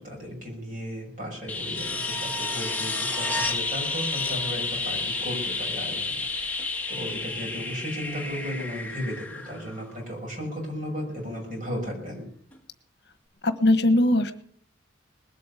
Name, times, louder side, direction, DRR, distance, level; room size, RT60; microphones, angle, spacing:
voice 1, 0.0-12.3, equal, 45° right, -1 dB, 6.8 m, -35 dB
sound 1, 1.5-10.2 12.5-12.6, left 3 dB, 10° left, 1.5 m, -31 dB
voice 2, 13.4-14.3, left 1 dB, 55° left, 11 dB, 1.3 m, -20 dB
20.0 x 8.6 x 8.4 m, 0.62 s
head